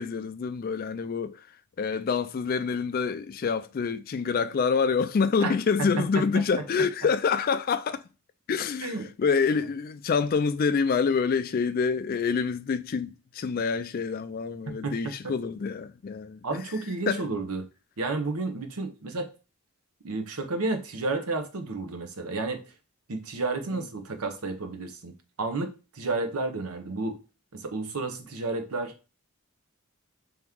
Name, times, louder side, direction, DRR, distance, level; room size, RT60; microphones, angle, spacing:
voice 1, 0.0-1.4 1.8-8.0 8.5-16.6 17.1-17.2 23.7-23.8, left 5 dB, 40° left, 0.3 m, -27 dB
voice 2, 8.8-9.1 14.8-14.9 16.4-17.7 18.0-19.3 20.0-22.6 23.1-25.1 25.4-27.2 27.5-28.9, right 3 dB, 80° right, 0.8 m, -31 dB
3.6 x 3.0 x 3.5 m
head